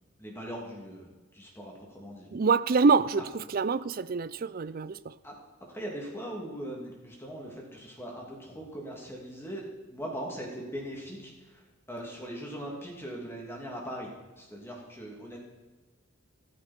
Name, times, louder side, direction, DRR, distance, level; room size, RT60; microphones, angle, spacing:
voice 1, 0.2-1.1 1.3-2.3 5.2-5.3 5.7-9.6 9.9-15.4, equal, 10° left, 2.6 m, -40 dB
voice 2, 2.3-5.1, right 4 dB, 45° right, 0.4 m, -26 dB
14.5 x 13.5 x 4.4 m
head